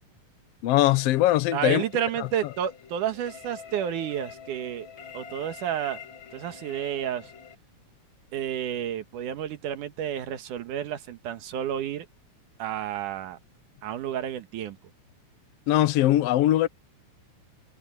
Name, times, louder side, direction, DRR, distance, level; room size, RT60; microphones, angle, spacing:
voice 1, 0.6-1.8 2.2-2.3 15.7-16.7, left 14 dB, 70° left, 1.5 m, -21 dB
sound 1, 0.7-7.6, left 6 dB, 45° left, 2.0 m, -46 dB
voice 2, 1.5-4.9 5.1-6.0 6.3-7.3 8.3-12.1 12.6-13.4 13.8-14.8, right 10 dB, 80° right, 2.9 m, -31 dB
omnidirectional pair, 3.6 m